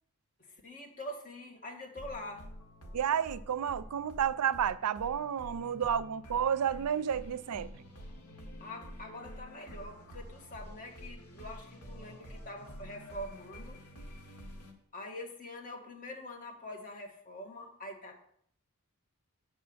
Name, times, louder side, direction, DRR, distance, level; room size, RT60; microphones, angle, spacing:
voice 1, 0.4-2.4 8.6-13.8 14.9-18.2, left 1 dB, 40° left, 1.6 m, -45 dB
sound 1, 1.9-14.7, equal, 85° left, 1.9 m, -48 dB
voice 2, 2.9-7.7, right 8 dB, 90° right, 0.4 m, -31 dB
8.6 x 4.6 x 6.9 m
head